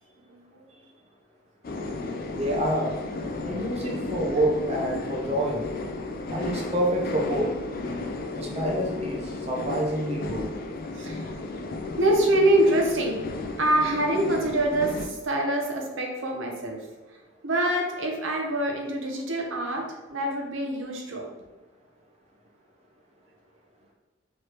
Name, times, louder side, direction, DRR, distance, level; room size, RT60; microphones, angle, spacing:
sound 1, 1.6-15.1, left 2 dB, 50° left, 0.4 m, -34 dB
voice 1, 1.7-2.2 3.5-3.7 7.9-8.2 11.0-11.3 12.0-13.2 13.6-16.8 17.4-19.8 20.1-21.3, right 1 dB, 85° right, 1 dB, 0.8 m, -25 dB
voice 2, 2.4-3.0 3.5-5.6 6.3-7.5 8.3-10.5, right 1 dB, 35° right, -2 dB, 0.7 m, -27 dB
4.6 x 3.2 x 2.9 m, 1.2 s
head